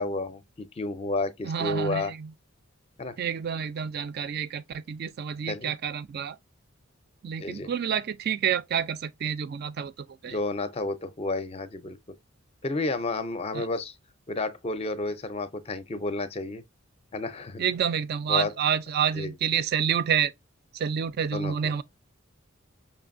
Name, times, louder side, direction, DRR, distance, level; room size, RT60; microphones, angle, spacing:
voice 1, 0.0-2.1 3.0-3.2 5.5-5.7 7.4-7.7 10.3-12.0 12.6-13.9 14.3-16.6 17.1-17.6 18.3-18.5 19.1-19.3 21.3-21.7, left 2 dB, 30° left, 0.5 m, -31 dB
voice 2, 1.4-2.3 3.2-6.4 7.2-9.9 10.2-10.4 13.5-13.7 17.6-20.3 20.7-21.8, right 8 dB, 50° right, 0.3 m, -28 dB
5.4 x 2.6 x 2.5 m
head